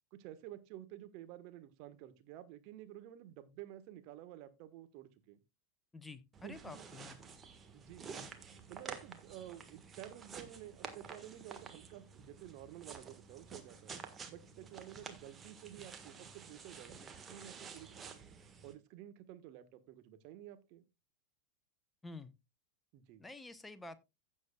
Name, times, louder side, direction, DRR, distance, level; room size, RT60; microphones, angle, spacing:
voice 1, 0.1-5.4 6.4-6.8 7.7-13.9 14.3-18.2 18.6-20.8 22.9-23.2, right 12 dB, 45° right, 1.3 m, -52 dB
voice 2, 5.9-7.1 22.0-22.3 23.2-24.0, left 3 dB, 10° left, 0.9 m, -49 dB
sound 1, 6.3-18.7, right 5 dB, 20° right, 1.5 m, -51 dB
15.5 x 7.2 x 2.3 m
figure-of-eight pair, 90°, 0 cm